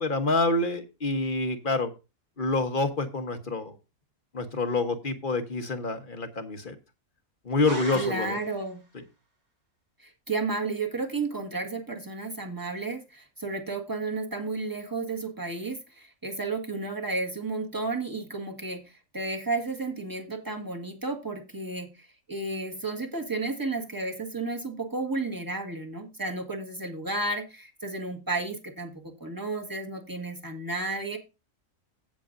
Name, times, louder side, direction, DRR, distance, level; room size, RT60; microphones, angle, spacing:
voice 1, 0.0-1.9 2.4-3.7 4.3-6.7 7.4-8.4, left 3 dB, 40° left, 7 dB, 1.2 m, -27 dB
sound 1, 7.7-8.8, right 2 dB, 55° right, 6.8 m, -39 dB
voice 2, 7.9-8.8 10.0-31.2, right 3 dB, 15° right, 2 dB, 1.4 m, -32 dB
16.0 x 6.8 x 2.6 m, 0.28 s
omnidirectional pair, 1.5 m